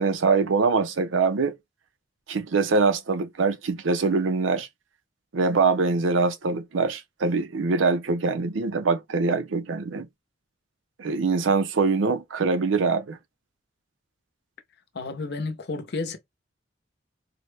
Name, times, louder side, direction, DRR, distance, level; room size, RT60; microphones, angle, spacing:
voice 1, 0.0-1.6 2.3-4.7 5.3-10.1 11.0-13.2, right 4 dB, 90° right, 0.5 m, -23 dB
voice 2, 14.9-16.2, left 3 dB, 60° left, 0.7 m, -31 dB
4.1 x 2.1 x 3.2 m
head